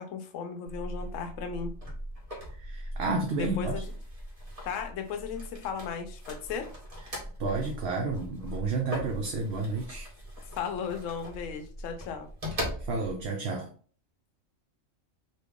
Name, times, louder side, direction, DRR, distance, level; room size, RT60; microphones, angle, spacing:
voice 1, 0.0-1.8 3.4-3.8 4.6-6.7 10.6-12.3, left 6 dB, 75° left, 0.9 m, -35 dB
sound 1, 0.7-13.3, equal, 30° right, 1.0 m, -40 dB
voice 2, 2.6-3.7 7.4-10.1 12.9-13.7, right 3 dB, 60° right, 0.7 m, -31 dB
3.2 x 2.4 x 3.5 m
omnidirectional pair, 1.4 m